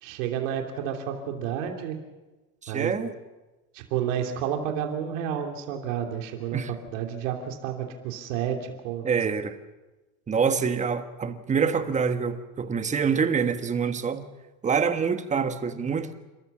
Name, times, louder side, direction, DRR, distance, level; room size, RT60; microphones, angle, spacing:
voice 1, 0.0-2.0 2.7-2.9 3.7-9.1, right 9 dB, 85° right, 3 dB, 3.0 m, -30 dB
voice 2, 2.6-3.1 6.5-6.7 9.0-9.5 10.3-14.3 14.6-16.1, right 6 dB, 20° right, 9 dB, 1.3 m, -26 dB
29.5 x 14.0 x 7.3 m, 1.1 s
supercardioid pair, 135°, 37 cm